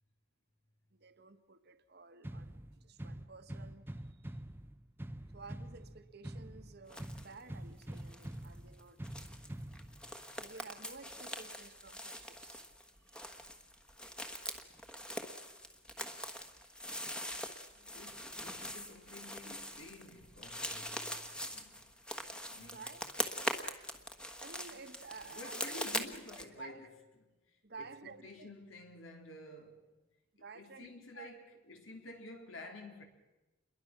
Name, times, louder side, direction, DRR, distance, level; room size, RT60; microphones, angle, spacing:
voice 1, 0.9-4.4 5.3-9.0 10.3-12.6 13.0-13.5 22.5-23.1 24.4-25.6 26.5-26.9 27.6-28.5 30.4-31.3, right 4 dB, 55° right, 1.3 m, -53 dB
sound 1, 2.2-10.2, right 1 dB, 10° right, 0.7 m, -46 dB
sound 2, 6.9-7.3 7.6-26.4, equal, 5° left, 1.3 m, -43 dB
voice 2, 17.7-21.9 22.5-22.8 25.3-27.0 27.3-30.0 30.5-33.0, left 2 dB, 85° left, 3.8 m, -51 dB
28.0 x 22.0 x 6.1 m
head